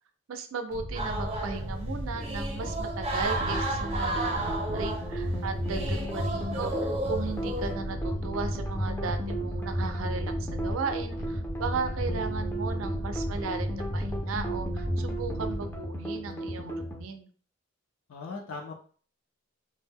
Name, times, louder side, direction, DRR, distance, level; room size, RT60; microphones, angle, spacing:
voice 1, 0.3-16.7 17.0-17.3, right 4 dB, 70° right, 7 dB, 0.4 m, -36 dB
sound 1, 0.7-15.8, equal, 90° left, 0.8 m, -36 dB
sound 2, 0.9-7.7, right 2 dB, 30° right, 0.6 m, -33 dB
sound 3, 3.3-17.0, equal, 10° left, 0.4 m, -34 dB
voice 2, 5.6-6.1 18.1-18.7, left 4 dB, 70° left, 0 dB, 0.4 m, -40 dB
2.1 x 2.0 x 3.5 m, 0.43 s
head